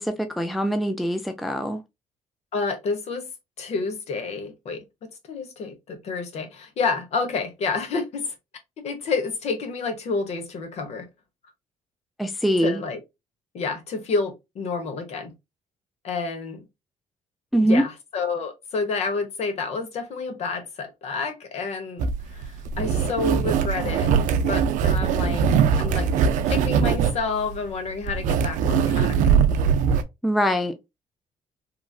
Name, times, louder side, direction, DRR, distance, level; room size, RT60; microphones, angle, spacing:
voice 1, 0.0-1.8 12.2-12.8 17.5-17.8 30.2-31.0, equal, ahead, 0.3 m, -23 dB
voice 2, 2.5-3.3 3.6-4.8 5.3-8.3 8.8-11.1 12.6-13.0 13.5-15.3 16.0-16.6 17.6-22.1 22.3-24.1 24.4-25.4 25.8-26.1 26.5-29.2, left 4 dB, 55° left, 0.9 m, -29 dB
sound 1, 22.0-30.0, right 7 dB, 80° right, 0.4 m, -21 dB
3.0 x 2.5 x 2.3 m
cardioid pair, 115°, 13 cm